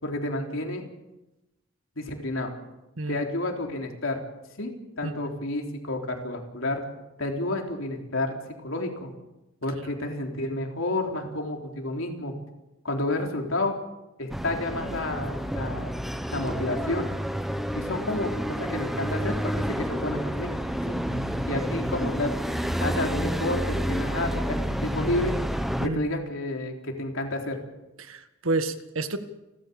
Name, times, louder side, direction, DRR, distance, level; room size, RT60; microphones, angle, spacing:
voice 1, 0.0-0.9 2.0-2.6 3.1-4.2 4.6-6.8 7.2-9.1 9.6-12.3 12.8-13.8 14.2-15.9 16.3-17.1 17.7-20.5 20.9-21.0 21.5-22.3 22.8-25.3 25.8-27.6, left 2 dB, 75° left, 2 dB, 3.8 m, -30 dB
voice 2, 5.0-5.3 9.8-9.9 21.1-21.4 25.8-26.1 28.0-29.2, right 2 dB, 80° right, 9 dB, 1.7 m, -31 dB
sound 1, 14.3-25.9, equal, ahead, 1.1 m, -29 dB
29.5 x 13.5 x 7.1 m, 0.98 s
head